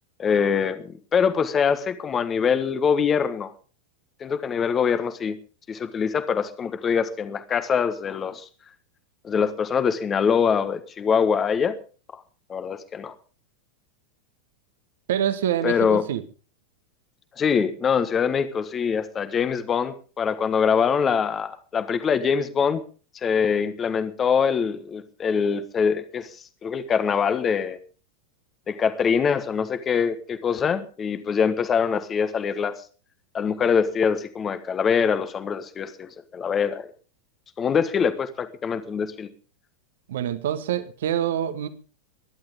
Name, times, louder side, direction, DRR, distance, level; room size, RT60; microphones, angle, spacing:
voice 1, 0.2-3.5 4.2-5.4 5.7-8.5 9.2-11.7 12.1-12.2 12.5-13.1 15.6-16.0 17.4-22.8 23.1-26.3 26.6-27.8 28.7-32.8 33.3-36.9 37.6-39.3, left 6 dB, 25° left, 1.5 m, -24 dB
voice 2, 15.1-16.2 40.1-41.7, right 10 dB, 60° right, 1.8 m, -26 dB
22.5 x 11.5 x 3.7 m
figure-of-eight pair, 90°, 0 cm